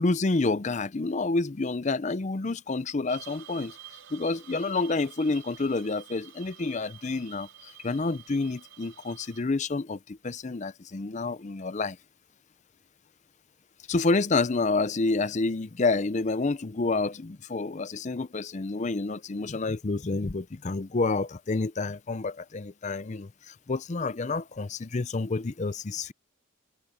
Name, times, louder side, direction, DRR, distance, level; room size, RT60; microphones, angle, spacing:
voice 1, 0.0-3.8 4.1-12.0 13.9-26.1, left 3 dB, 35° left, 0.5 m, -29 dB
sound 1, 3.1-9.4, right 12 dB, 90° right, 3.7 m, -49 dB
head